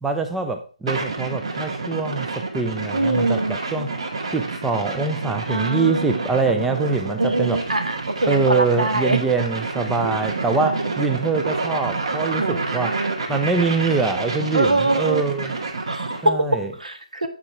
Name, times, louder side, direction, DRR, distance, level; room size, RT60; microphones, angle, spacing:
voice 1, 0.0-3.9 4.3-7.6 8.3-13.0 13.3-15.5 16.2-16.7, right 4 dB, 5° right, 6 dB, 0.4 m, -24 dB
sound 1, 0.9-16.3, right 3 dB, 50° right, 1.9 m, -29 dB
voice 2, 2.9-3.6 5.5-6.8 7.2-9.2 10.2-10.9 12.4-13.2 14.5-15.2 15.9-16.3 16.8-17.3, right 2 dB, 70° right, 7 dB, 1.5 m, -24 dB
7.7 x 6.1 x 4.5 m, 0.38 s
figure-of-eight pair, 150°, 4 cm